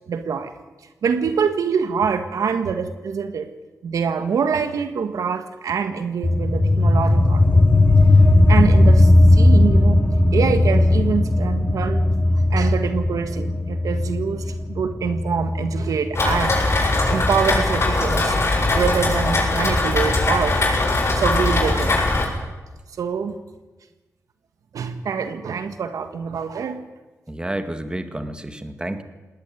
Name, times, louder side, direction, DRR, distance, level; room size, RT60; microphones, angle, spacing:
voice 1, 0.1-0.5 1.0-3.5 3.8-7.6 8.1-8.2 8.5-10.0 10.3-12.1 12.5-14.4 14.7-16.6 17.1-18.4 18.7-20.6 21.1-22.2 23.0-23.3 24.7-26.8, right 6 dB, 85° right, 9 dB, 1.6 m, -25 dB
sound 1, 6.2-17.3, left 2 dB, 30° left, 5.4 m, -17 dB
Rain, 16.2-22.3, left 2 dB, 50° left, 7.7 m, -20 dB
voice 2, 27.3-29.0, right 1 dB, 15° right, 8 dB, 2.1 m, -30 dB
19.0 x 19.0 x 9.7 m, 1.2 s
cardioid pair, 70°, 6 cm